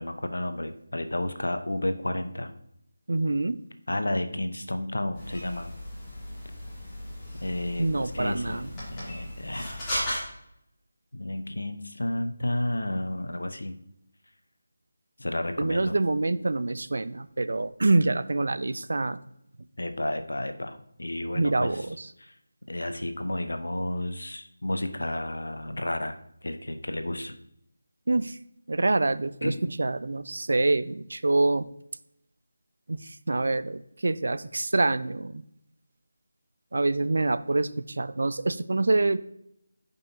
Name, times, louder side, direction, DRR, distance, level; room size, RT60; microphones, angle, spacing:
voice 1, 0.0-2.5 3.9-5.7 7.4-9.7 11.1-13.8 15.2-16.0 19.8-21.7 22.2-22.3 22.7-26.2 26.4-27.4 29.4-29.6, left 1 dB, 75° left, 8 dB, 0.8 m, -31 dB
voice 2, 3.1-3.6 7.8-8.7 15.6-19.2 21.4-22.1 28.1-28.4 28.7-31.7 32.9-35.4 36.7-39.2, right 2 dB, 65° right, 13 dB, 0.4 m, -26 dB
sound 1, 5.1-10.2, left 1 dB, 15° left, 2.9 m, -36 dB
10.5 x 5.4 x 2.7 m, 0.74 s
figure-of-eight pair, 160°, 0 cm